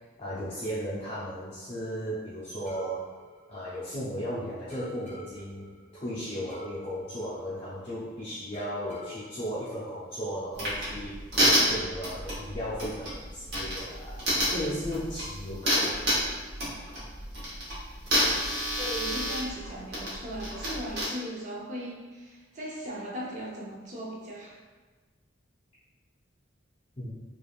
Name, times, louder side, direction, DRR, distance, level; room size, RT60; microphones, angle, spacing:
voice 1, 0.2-3.0 3.5-11.2 11.4-14.2 14.5-16.2 27.0-27.2, equal, 30° left, -12 dB, 0.5 m, -36 dB
sound 1, 2.7-4.2 4.7-8.1 8.5-10.5, equal, 10° left, 0.9 m, -48 dB
sound 2, 10.5-21.0, equal, 55° right, 1.0 m, -29 dB
voice 2, 18.5-24.6, equal, 35° right, -4 dB, 0.6 m, -38 dB
3.3 x 2.4 x 2.4 m, 1.3 s
head